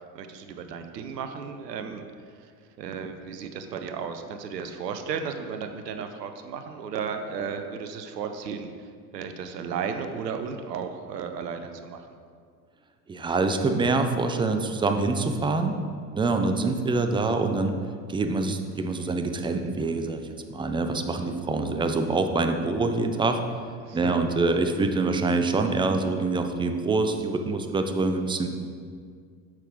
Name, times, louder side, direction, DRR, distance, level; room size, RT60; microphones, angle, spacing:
voice 1, 0.1-2.0 2.8-8.7 9.1-12.1 23.8-24.2, right 6 dB, 80° right, 7 dB, 0.8 m, -34 dB
voice 2, 13.1-15.8 16.1-17.7 18.1-23.4 23.9-28.5, right 3 dB, 10° right, 6 dB, 0.4 m, -25 dB
8.9 x 6.3 x 3.6 m, 2.1 s
hypercardioid pair, 75°, 48 cm